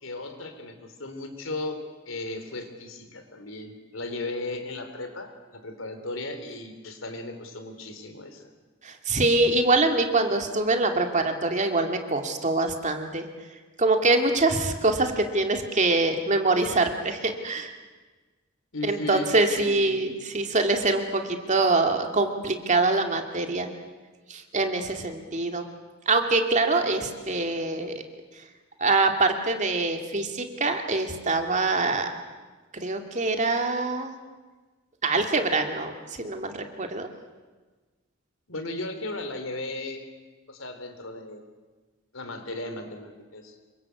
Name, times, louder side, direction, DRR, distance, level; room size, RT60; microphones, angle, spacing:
voice 1, 0.0-8.5 18.7-20.1 38.5-40.1 40.5-41.4 42.1-43.6, left 2 dB, 90° left, 7 dB, 3.7 m, -36 dB
voice 2, 8.8-13.2 13.8-17.7 18.8-23.7 24.3-25.6 26.1-28.0 28.8-32.1 32.8-34.1 35.0-35.9 36.2-37.1, right 3 dB, 40° right, 5 dB, 2.4 m, -24 dB
27.0 x 23.5 x 8.4 m, 1.3 s
head